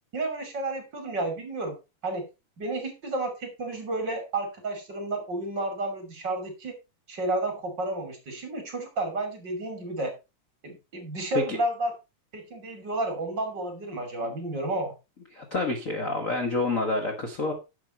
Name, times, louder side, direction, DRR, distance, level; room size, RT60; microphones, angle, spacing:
voice 1, 0.1-1.8 2.0-2.3 2.6-6.8 7.1-10.1 10.6-11.9 12.3-14.9, right 2 dB, 35° right, 6 dB, 3.2 m, -31 dB
voice 2, 15.3-17.5, left 2 dB, 40° left, 5 dB, 1.2 m, -28 dB
10.5 x 7.7 x 4.1 m, 0.27 s
omnidirectional pair, 3.6 m